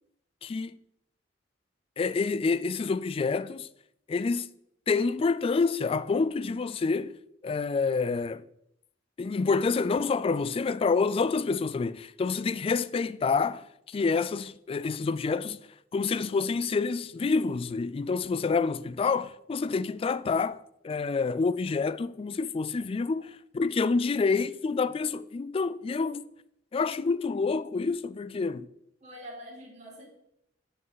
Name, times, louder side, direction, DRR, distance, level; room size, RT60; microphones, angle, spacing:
voice 1, 0.4-0.8 2.0-3.7 4.1-4.5 4.9-7.1 7.4-8.4 9.2-15.6 15.9-26.2 26.7-28.7, left 4 dB, 30° left, 0.3 m, -28 dB
voice 2, 29.0-30.1, equal, 40° right, 2.2 m, -45 dB
7.9 x 7.7 x 4.1 m
head